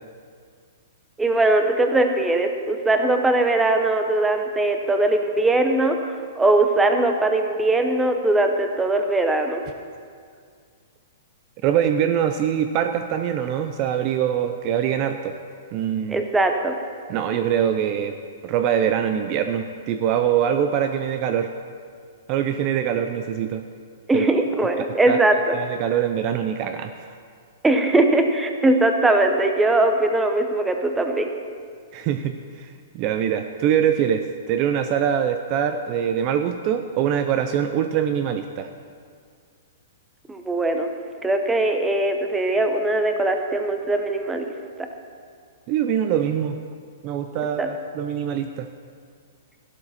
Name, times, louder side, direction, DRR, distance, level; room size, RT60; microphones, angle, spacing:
voice 1, 1.2-9.6 16.1-16.7 24.1-25.6 27.6-31.3 40.3-40.9 41.2-44.5 47.6-47.7, right 2 dB, 5° right, 5 dB, 0.8 m, -20 dB
voice 2, 11.6-15.4 15.7-16.3 17.1-18.1 18.4-21.5 22.3-23.6 24.1-24.3 25.1-25.2 25.5-27.1 31.9-38.7 45.7-46.6 47.0-48.7, right 9 dB, 30° right, 7 dB, 0.5 m, -23 dB
13.5 x 12.0 x 4.2 m, 2.1 s
hypercardioid pair, 160°, 0 cm